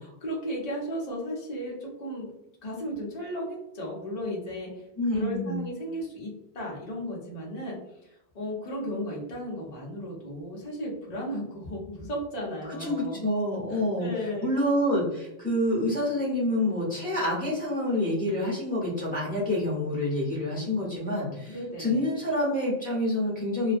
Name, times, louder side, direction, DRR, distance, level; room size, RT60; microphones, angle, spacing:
voice 1, 0.0-2.3 2.6-4.8 5.1-13.2 13.7-14.5 21.5-22.1, equal, 45° left, -3 dB, 0.8 m, -35 dB
voice 2, 5.0-5.6 12.7-14.1 14.4-23.8, left 1 dB, 10° left, -7 dB, 1.0 m, -27 dB
2.4 x 2.1 x 2.5 m, 0.86 s
omnidirectional pair, 1.1 m